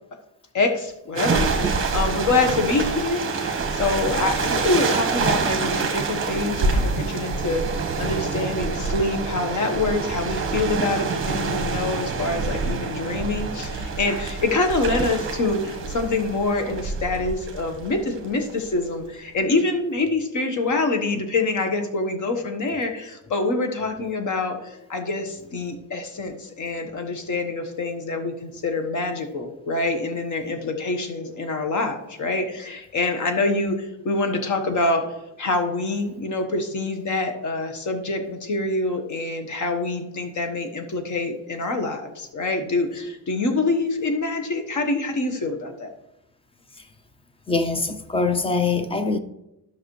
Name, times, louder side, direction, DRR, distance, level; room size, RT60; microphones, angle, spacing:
voice 1, 0.5-35.0 35.4-45.9, left 3 dB, 45° left, 1.3 m, -25 dB
sound 1, 1.1-18.7, right 4 dB, 30° right, 1.1 m, -26 dB
voice 2, 47.5-49.2, left 3 dB, 15° left, 0.4 m, -23 dB
12.5 x 6.0 x 3.2 m
cardioid pair, 140°, 42 cm